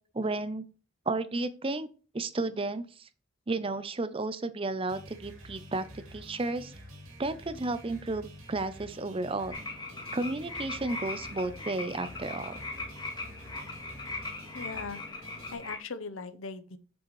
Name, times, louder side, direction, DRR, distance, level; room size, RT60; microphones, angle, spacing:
voice 1, 0.1-0.6 1.1-1.9 2.1-3.1 3.5-6.7 7.2-9.6 10.1-12.6, right 2 dB, 25° right, 13 dB, 0.5 m, -33 dB
sound 1, 4.9-15.5, equal, 80° right, 2.7 m, -49 dB
sound 2, 9.5-15.8, left 3 dB, 20° left, 2.0 m, -40 dB
voice 2, 14.5-15.2 15.5-16.8, left 4 dB, 75° left, 12 dB, 0.8 m, -40 dB
7.6 x 7.0 x 3.2 m, 0.36 s
head